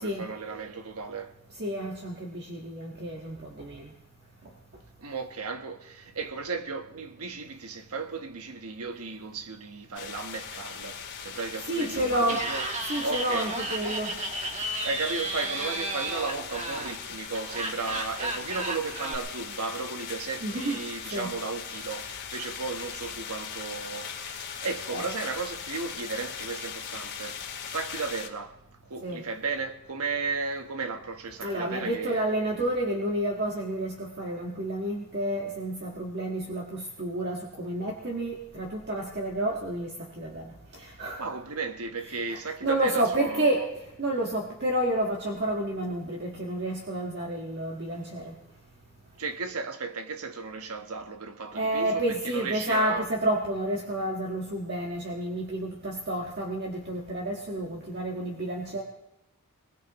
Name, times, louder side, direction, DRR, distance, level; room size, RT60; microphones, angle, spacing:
voice 1, 0.0-1.3 5.0-13.5 14.8-28.6 28.8-32.3 41.2-43.6 49.2-53.1, right 4 dB, 80° right, 1.2 m, -35 dB
voice 2, 1.6-3.9 11.7-12.5 12.9-14.1 20.4-20.8 21.1-21.3 24.9-25.1 29.0-29.2 31.4-41.2 42.1-43.6 44.0-48.3 51.5-58.8, right 1 dB, 50° right, 1.6 m, -30 dB
sound 1, 10.0-28.3, left 7 dB, 50° left, 2.3 m, -40 dB
Laughter, 12.2-19.2, right 2 dB, 30° right, 1.4 m, -33 dB
23.0 x 20.5 x 3.0 m
head